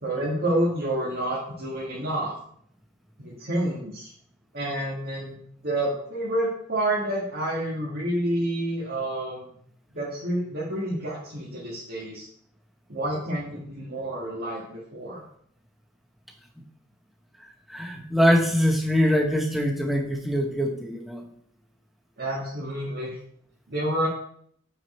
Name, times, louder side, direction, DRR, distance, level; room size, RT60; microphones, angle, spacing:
voice 1, 0.0-2.4 3.2-4.1 4.5-9.5 9.9-12.3 12.9-15.2 22.2-23.2 23.7-24.1, right 1 dB, 50° right, -6 dB, 1.6 m, -29 dB
voice 2, 17.7-21.3, equal, ahead, 2 dB, 0.8 m, -23 dB
7.4 x 4.9 x 4.2 m, 0.65 s
head